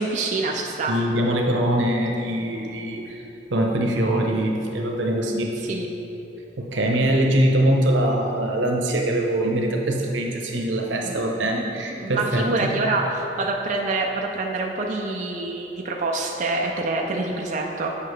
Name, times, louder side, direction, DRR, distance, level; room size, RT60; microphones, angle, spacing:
voice 1, 0.0-0.9 5.7-5.9 11.0-11.2 12.0-18.0, right 3 dB, 40° right, 0 dB, 0.4 m, -26 dB
voice 2, 0.9-3.2 3.5-5.6 6.6-12.8, right 1 dB, 90° right, 1 dB, 0.8 m, -23 dB
8.4 x 5.6 x 3.2 m, 3.0 s
head